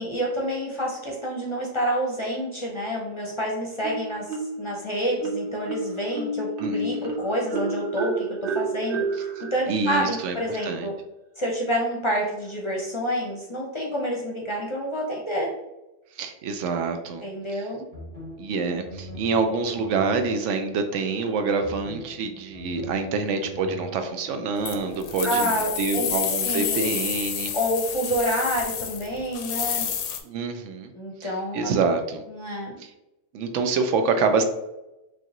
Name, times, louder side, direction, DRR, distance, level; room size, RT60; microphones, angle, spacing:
voice 1, 0.0-4.3 4.6-9.0 9.5-10.9 11.4-15.5 17.2-17.8 25.2-26.2 26.4-27.0 27.5-29.9 30.9-31.7 32.3-32.7, equal, 30° left, -2 dB, 0.6 m, -28 dB
Marimba xylophone, 3.8-4.7 5.2-10.7, right 3 dB, 55° right, 0.8 m, -31 dB
voice 2, 6.6-7.1 9.7-10.9 16.2-17.3 17.5-17.6 18.4-27.5 30.2-30.9 31.2-32.2 32.8-32.9 33.3-34.4, right 4 dB, 80° right, 7 dB, 0.9 m, -26 dB
sound 1, 17.9-25.3, equal, 30° right, 1.1 m, -42 dB
sound 2, 24.7-30.2, left 8 dB, 80° left, 0.9 m, -29 dB
5.1 x 2.4 x 2.9 m, 0.96 s
omnidirectional pair, 1.2 m